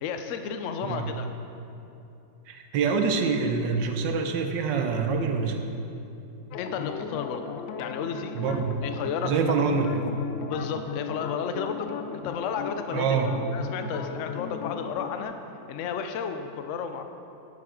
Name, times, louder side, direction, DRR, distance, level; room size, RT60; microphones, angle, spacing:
voice 1, 0.0-1.3 6.6-7.4 7.8-8.4 8.8-9.5 10.4-15.4 15.7-17.0, left 6 dB, 70° left, 7 dB, 0.7 m, -32 dB
voice 2, 2.5-5.6 8.3-8.8 9.2-10.1 12.9-13.3, right 5 dB, 80° right, 5 dB, 1.4 m, -25 dB
sound 1, 6.5-15.2, left 7 dB, 90° left, 1.3 m, -37 dB
10.5 x 9.1 x 3.7 m, 2.8 s
omnidirectional pair, 2.0 m